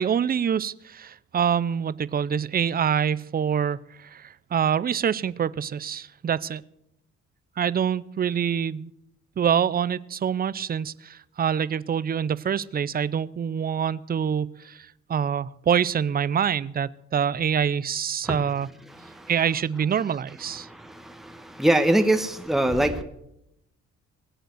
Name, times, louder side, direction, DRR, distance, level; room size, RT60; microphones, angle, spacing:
voice 1, 0.0-6.6 7.6-8.9 9.4-18.7 19.3-20.7, right 8 dB, 30° right, 20 dB, 0.5 m, -25 dB
voice 2, 21.6-23.0, right 1 dB, ahead, 7 dB, 1.3 m, -21 dB
19.0 x 8.0 x 7.8 m, 0.80 s
cardioid pair, 90°, 30 cm